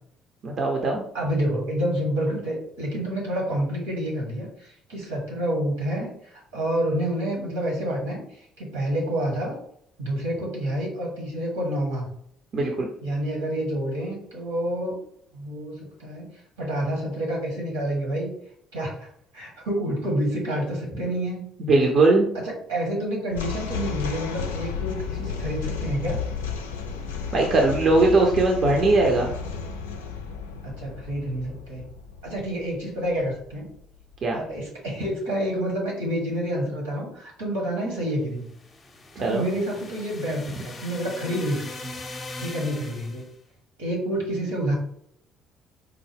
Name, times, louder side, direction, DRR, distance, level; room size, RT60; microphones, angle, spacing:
voice 1, 0.4-1.0 12.5-12.9 21.6-22.3 27.3-29.3 34.2-34.4 39.2-39.4, right 2 dB, 50° right, 0 dB, 0.6 m, -20 dB
voice 2, 1.1-9.5 10.0-12.1 13.0-15.0 15.3-16.3 16.6-18.3 18.7-19.1 19.3-21.4 22.3-26.2 30.6-31.9 32.2-33.7 34.3-38.4 39.2-41.9 42.4-43.2 43.8-44.7, right 1 dB, 80° right, -2 dB, 1.3 m, -28 dB
sound 1, 23.3-34.6, left 6 dB, 80° left, 0.3 m, -33 dB
sound 2, 38.4-43.3, left 2 dB, 35° left, 0.6 m, -40 dB
4.6 x 2.0 x 3.4 m, 0.70 s
figure-of-eight pair, 50°, 0 cm